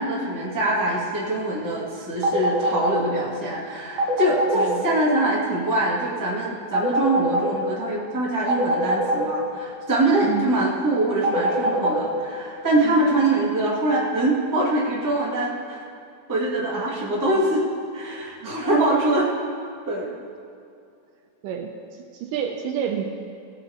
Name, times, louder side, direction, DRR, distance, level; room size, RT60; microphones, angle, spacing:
voice 1, 0.0-15.8 16.3-17.6 17.9-19.3 19.8-20.1, right 1 dB, 10° right, -5 dB, 0.8 m, -23 dB
sound 1, 2.2-3.0 4.0-4.7 6.7-7.5 8.5-9.2 11.2-12.0, right 1 dB, 55° right, 2.0 m, -22 dB
voice 2, 4.5-4.9 10.2-10.5 12.8-13.1 18.4-18.6 19.0-19.1 21.4-23.1, right 8 dB, 80° right, 4 dB, 2.1 m, -30 dB
17.5 x 8.0 x 4.3 m, 2.4 s
omnidirectional pair, 4.1 m